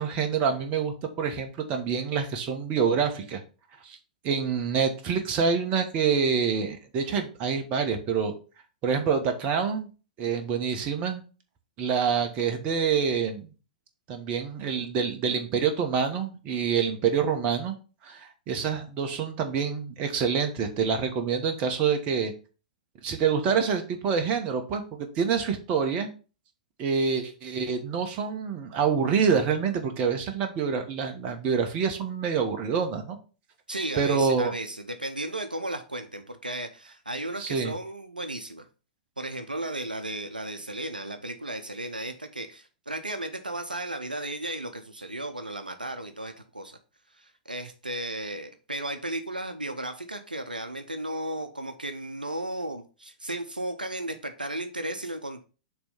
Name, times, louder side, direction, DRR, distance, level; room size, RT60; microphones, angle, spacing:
voice 1, 0.0-3.4 3.8-4.0 4.2-8.3 8.8-9.9 10.2-11.2 11.8-13.5 14.1-17.7 18.0-22.3 23.0-26.1 26.8-33.2 34.0-34.5 37.4-37.7, right 6 dB, 30° right, 5 dB, 1.2 m, -26 dB
voice 2, 33.7-38.6 39.2-46.8 47.1-55.4, right 1 dB, 85° right, 8 dB, 0.7 m, -35 dB
6.8 x 3.2 x 5.3 m, 0.34 s
figure-of-eight pair, 105°, 5 cm